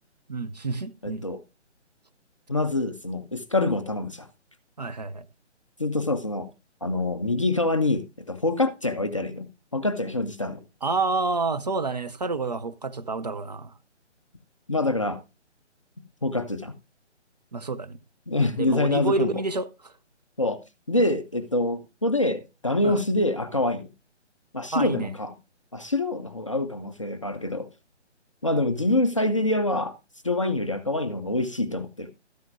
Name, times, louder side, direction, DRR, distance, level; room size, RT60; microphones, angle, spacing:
voice 1, 0.3-1.2 4.8-5.3 10.8-13.7 17.5-18.0 18.6-19.9 22.8-23.0 24.7-25.1, right 3 dB, 35° right, 0.5 m, -29 dB
voice 2, 1.0-1.4 2.5-4.3 5.8-6.5 6.8-10.6 14.7-15.2 16.2-16.7 18.3-19.3 20.4-20.6 20.9-23.9 24.5-25.3 25.7-27.7 28.4-29.9 30.2-32.1, left 2 dB, 30° left, 0.5 m, -25 dB
13.0 x 9.2 x 2.5 m
figure-of-eight pair, 155°, 36 cm